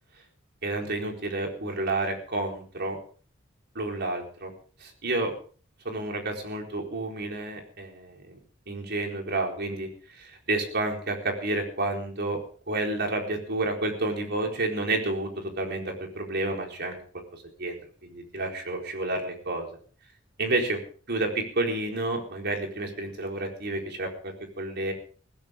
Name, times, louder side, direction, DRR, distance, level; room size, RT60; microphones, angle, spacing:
voice 1, 0.6-3.0 3.7-4.5 4.8-5.3 5.8-8.4 8.7-9.9 10.2-12.4 12.7-17.0 17.3-17.7 18.0-19.7 20.4-20.8 21.1-24.9, right 2 dB, 55° right, 2 dB, 4.3 m, -30 dB
21.0 x 16.0 x 3.8 m, 0.41 s
head